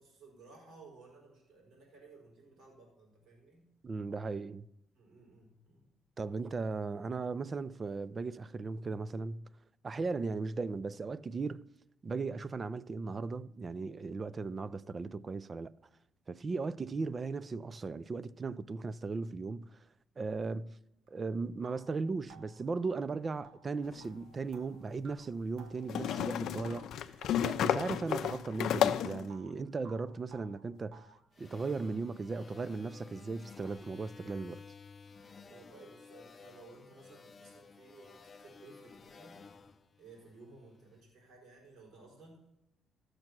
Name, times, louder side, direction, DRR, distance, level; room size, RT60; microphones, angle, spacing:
voice 1, 0.0-3.7 4.9-5.9 14.2-14.3 16.5-16.6 35.5-39.4 40.0-42.5, right 3 dB, 70° right, 4.6 m, -57 dB
voice 2, 3.8-4.7 6.2-9.5 9.8-11.7 12.0-15.7 16.3-19.8 20.2-20.8 21.1-27.1 27.4-31.1 31.4-34.6, right 4 dB, 30° right, 0.4 m, -37 dB
sound 1, 21.1-21.2 21.6-27.9 28.2-29.6 29.8-31.2, right 4 dB, 85° right, 1.1 m, -57 dB
sound 2, 23.9-24.0 25.9-29.3, left 10 dB, 75° left, 0.5 m, -32 dB
sound 3, 31.4-40.8, left 5 dB, 30° left, 0.6 m, -54 dB
14.5 x 6.5 x 6.0 m
cardioid pair, 125°, 0 cm